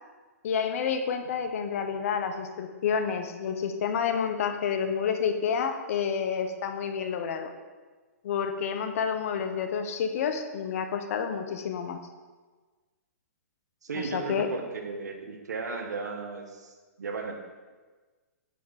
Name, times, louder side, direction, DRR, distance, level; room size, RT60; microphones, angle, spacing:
voice 1, 0.4-7.5 8.2-12.0 13.9-14.5, left 7 dB, 55° left, 7 dB, 0.8 m, -29 dB
voice 2, 13.8-17.3, right 4 dB, 85° right, 4 dB, 1.2 m, -35 dB
8.4 x 3.5 x 5.8 m, 1.3 s
hypercardioid pair, 145°, 9 cm